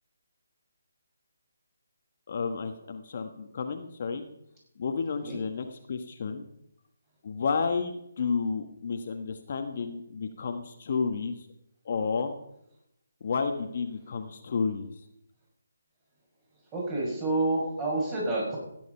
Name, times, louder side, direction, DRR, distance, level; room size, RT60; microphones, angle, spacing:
voice 1, 2.3-4.3 4.8-6.5 7.2-11.5 11.8-12.4 13.2-14.9, left 5 dB, 50° left, 6 dB, 1.2 m, -31 dB
voice 2, 16.7-18.6, right 2 dB, 20° right, -3 dB, 6.3 m, -28 dB
15.5 x 9.3 x 5.5 m, 0.80 s
figure-of-eight pair, 150°, 0 cm